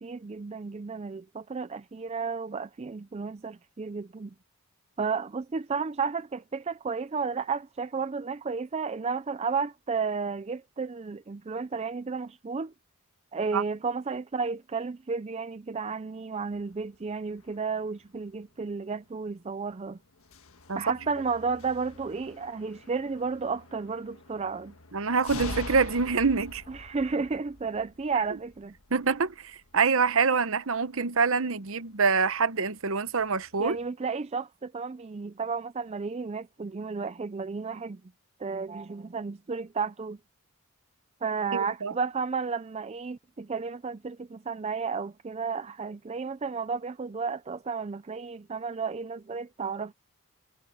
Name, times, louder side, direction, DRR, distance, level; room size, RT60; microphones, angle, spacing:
voice 1, 0.0-4.3 5.0-12.7 13.3-20.0 20.7-24.7 26.7-28.7 33.6-38.0 38.4-40.2 41.2-49.9, right 5 dB, 30° right, 0.4 m, -32 dB
sound 1, 16.5-33.9, left 2 dB, 65° left, 1.6 m, -46 dB
voice 2, 24.9-26.6 28.9-33.8 41.5-41.9, right 5 dB, 60° right, 0.8 m, -25 dB
head